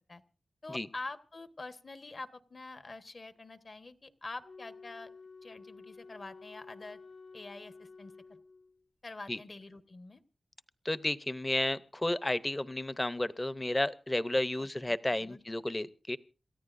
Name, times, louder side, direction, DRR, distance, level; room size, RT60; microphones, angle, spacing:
voice 1, 0.6-5.1 5.4-7.0 7.3-8.4 9.0-10.2 14.6-15.4, left 3 dB, 50° left, 10 dB, 1.2 m, -46 dB
Wind instrument woodwind instrument, 4.4-8.8, left 4 dB, 80° left, 1.7 m, -52 dB
voice 2, 10.8-16.2, left 1 dB, 20° left, 15 dB, 0.7 m, -32 dB
28.0 x 14.0 x 2.6 m, 0.35 s
wide cardioid pair, 95°, 0 cm